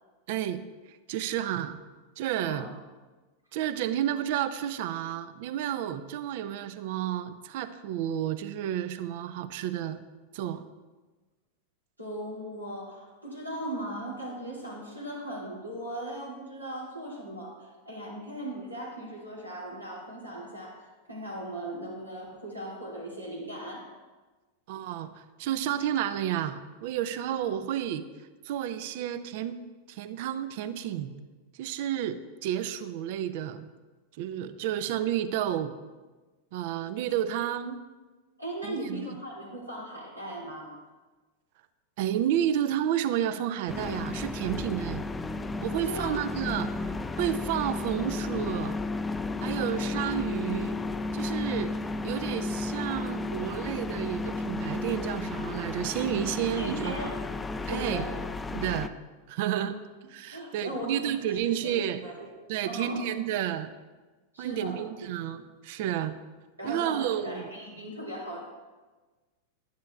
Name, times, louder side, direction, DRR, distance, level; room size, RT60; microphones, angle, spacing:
voice 1, 0.3-0.6 0.9-1.8 2.2-2.7 3.5-10.0 10.3-10.6 24.7-28.1 28.4-29.6 29.9-31.1 31.5-33.7 34.2-35.7 36.5-37.8 38.6-39.0 42.0-45.0 45.6-46.7 47.2-48.8 49.4-50.8 51.1-51.7 52.0-56.9 57.7-58.0 58.5-58.9 59.3-59.8 60.1-62.0 62.5-63.7 64.4-66.1 66.6-67.5, right 10 dB, 50° right, 12 dB, 0.5 m, -31 dB
voice 2, 2.3-2.7 12.0-23.9 38.4-40.8 45.8-46.2 56.6-57.2 57.6-58.1 59.5-59.7 60.3-60.9 61.3-62.3 62.6-63.0 64.3-64.8 66.6-68.4, right 1 dB, 85° right, -4 dB, 2.6 m, -38 dB
sound 1, 43.7-58.9, left 3 dB, 10° left, 0.4 m, -33 dB
10.5 x 10.5 x 2.4 m, 1.3 s
figure-of-eight pair, 90°, 0 cm